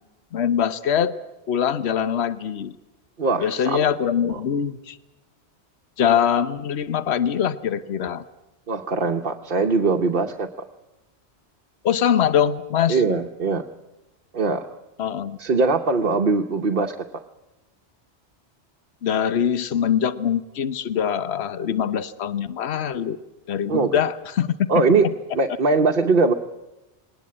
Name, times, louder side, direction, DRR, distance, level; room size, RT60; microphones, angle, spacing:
voice 1, 0.3-1.2 1.5-2.8 3.4-5.0 6.0-8.2 11.8-13.0 15.0-15.4 19.0-23.2 23.5-25.1, left 8 dB, 70° left, 13 dB, 1.2 m, -23 dB
voice 2, 3.2-3.9 4.2-4.4 8.7-10.5 12.9-13.7 14.3-14.7 15.4-17.2 23.7-23.9 24.7-25.1 25.3-26.3, right 4 dB, 50° right, 4 dB, 1.1 m, -21 dB
20.5 x 19.0 x 8.5 m, 0.98 s
omnidirectional pair, 1.2 m